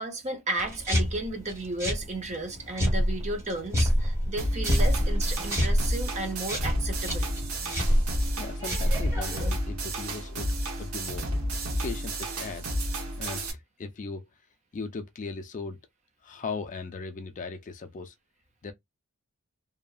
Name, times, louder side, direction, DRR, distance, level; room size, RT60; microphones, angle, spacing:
voice 1, 0.0-7.3 11.7-11.8, right 2 dB, 30° right, 0.6 m, -33 dB
sound 1, 0.6-9.5, equal, 15° right, 1.3 m, -28 dB
sound 2, 4.4-13.5, right 1 dB, 70° right, 0.9 m, -31 dB
voice 2, 8.4-11.3 11.8-12.8 13.1-14.3 14.7-15.8 16.2-18.1 18.6-18.7, left 4 dB, 35° left, 0.4 m, -38 dB
2.7 x 2.3 x 2.4 m
head